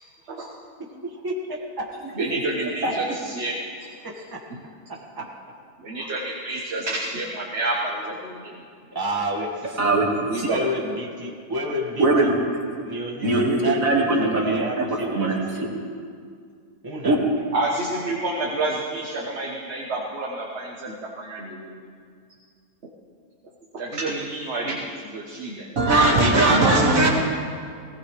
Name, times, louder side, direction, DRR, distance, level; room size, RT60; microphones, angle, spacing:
voice 1, 2.1-3.6 4.5-4.6 5.8-8.6 10.3-10.6 17.5-21.9 23.7-25.7 26.4-26.5, right 2 dB, 45° right, -2 dB, 1.5 m, -29 dB
voice 2, 4.0-4.4 5.2-5.3 8.9-9.8 10.5-12.3 12.8-15.3 15.5-15.6 16.8-17.2, equal, 15° right, -2 dB, 1.9 m, -30 dB
voice 3, 9.8-10.1 10.3-10.5 12.0-12.3 13.2-14.6 15.1-15.3 15.6-15.7 17.0-17.2 25.8-27.1, right 2 dB, 60° right, -1 dB, 2.4 m, -19 dB
19.0 x 18.5 x 3.4 m, 2.2 s
omnidirectional pair, 1.6 m